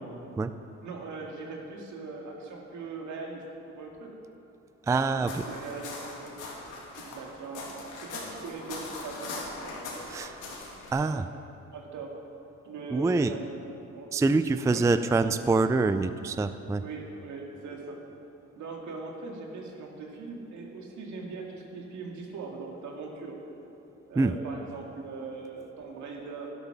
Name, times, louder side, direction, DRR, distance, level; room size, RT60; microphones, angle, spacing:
voice 1, 0.8-3.4 3.7-4.1 4.9-6.4 6.9-9.4 9.6-10.0 11.0-11.1 11.7-12.2 12.6-13.5 13.9-14.1 14.7-14.9 16.8-18.0 18.6-23.4 24.1-26.5, right 4 dB, 75° right, 1 dB, 2.2 m, -40 dB
voice 2, 4.9-5.4 10.1-10.3 10.9-11.2 12.9-13.3 14.1-16.8 24.2-24.3, right 3 dB, 10° right, 11 dB, 0.4 m, -25 dB
sound 1, 5.2-10.9, left 3 dB, 85° left, 2.7 m, -40 dB
12.0 x 11.0 x 6.0 m, 2.8 s
cardioid pair, 90°, 30 cm